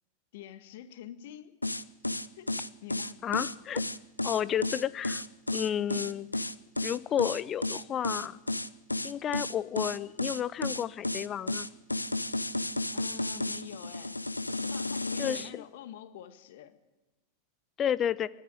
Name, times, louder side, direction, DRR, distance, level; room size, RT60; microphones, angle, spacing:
voice 1, 0.3-1.5 2.3-2.5 2.8-3.2 12.9-14.2 14.5-16.7, left 11 dB, 55° left, 11 dB, 1.7 m, -46 dB
sound 1, 1.6-15.5, left 2 dB, 85° left, 0.7 m, -32 dB
voice 2, 3.2-3.8 4.2-5.2 5.5-6.3 6.8-8.4 9.0-11.7 15.2-15.5 17.8-18.3, left 9 dB, 25° left, 19 dB, 0.7 m, -31 dB
23.0 x 13.0 x 9.0 m, 1.1 s
figure-of-eight pair, 90°, 0 cm